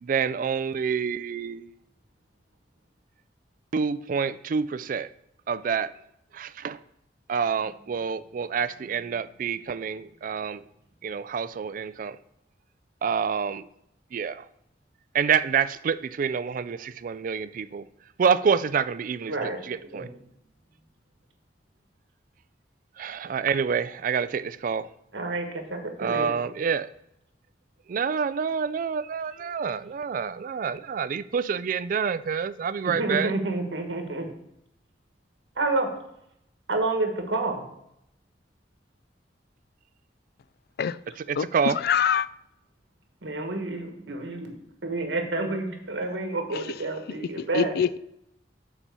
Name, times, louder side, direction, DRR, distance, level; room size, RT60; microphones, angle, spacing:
voice 1, 0.0-1.7 3.7-5.1 5.5-5.9 6.3-6.8 7.3-10.6 11.0-12.2 13.0-13.7 14.1-14.4 15.1-17.8 18.2-19.3 19.7-20.1 23.0-24.9 26.0-26.9 27.9-33.3 41.3-41.8, right 6 dB, 45° right, 0.3 m, -27 dB
voice 2, 19.3-19.6 19.9-20.1 25.1-26.4 32.8-34.3 35.5-35.9 36.7-37.6 43.2-47.7, right 2 dB, 80° right, 1.5 m, -29 dB
voice 3, 41.8-42.3 47.5-48.0, left 8 dB, 60° left, 0.3 m, -23 dB
7.2 x 4.3 x 6.8 m
head